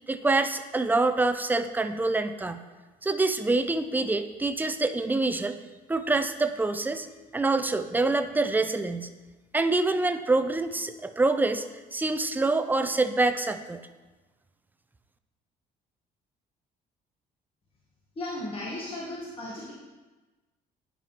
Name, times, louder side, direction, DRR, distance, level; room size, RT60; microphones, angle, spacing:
voice 1, 0.1-2.6 3.0-5.6 5.9-7.1 7.3-9.1 9.5-11.6 11.9-13.8, right 3 dB, 10° right, 9 dB, 0.4 m, -26 dB
voice 2, 18.2-19.7, left 1 dB, 30° left, -5 dB, 1.3 m, -35 dB
10.0 x 5.4 x 2.9 m, 1.2 s
cardioid pair, 110°, 17 cm